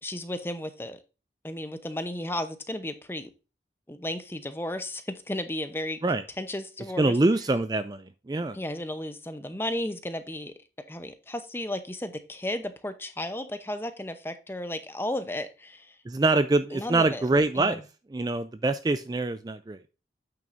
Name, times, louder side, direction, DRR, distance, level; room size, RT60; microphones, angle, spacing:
voice 1, 0.0-1.0 1.4-3.3 3.9-6.0 6.4-7.2 8.5-10.5 10.9-15.9 16.7-17.3 17.5-17.8, left 1 dB, 15° left, 10 dB, 0.7 m, -34 dB
voice 2, 7.0-8.6 16.1-17.8 18.1-19.8, right 2 dB, 25° right, 11 dB, 0.3 m, -25 dB
8.7 x 6.3 x 2.6 m, 0.31 s
head